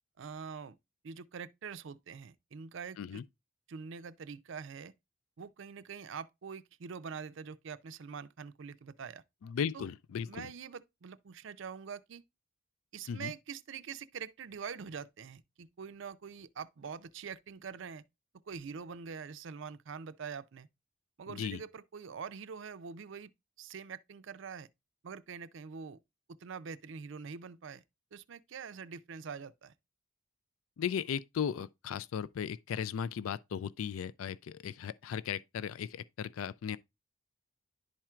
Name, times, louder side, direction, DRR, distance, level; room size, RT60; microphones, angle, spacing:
voice 1, 0.2-0.8 1.0-3.2 3.7-4.9 5.4-9.2 9.7-9.9 10.3-12.2 12.9-18.0 18.5-20.7 21.2-23.3 23.6-24.7 25.0-26.0 26.3-27.8 28.1-29.7, right 6 dB, 65° right, 0.4 m, -44 dB
voice 2, 9.4-10.5 13.1-13.3 21.3-21.6 30.8-36.8, left 7 dB, 80° left, 0.3 m, -36 dB
11.0 x 4.4 x 2.3 m
head